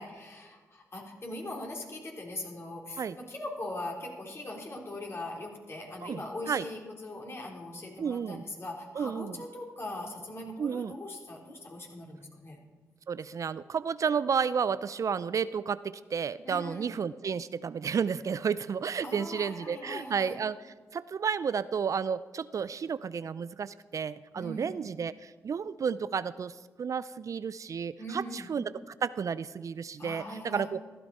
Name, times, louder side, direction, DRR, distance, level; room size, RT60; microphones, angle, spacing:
voice 1, 0.0-12.6 16.4-17.0 19.0-20.4 24.3-24.7 28.0-28.5 30.0-30.7, left 1 dB, 40° left, -1 dB, 3.8 m, -41 dB
voice 2, 6.0-6.7 8.0-8.4 9.0-9.4 10.6-10.9 13.1-20.6 20.9-28.7 29.0-30.8, right 6 dB, 55° right, 16 dB, 0.4 m, -32 dB
15.0 x 12.5 x 4.3 m, 1.4 s
supercardioid pair, 45°, 7 cm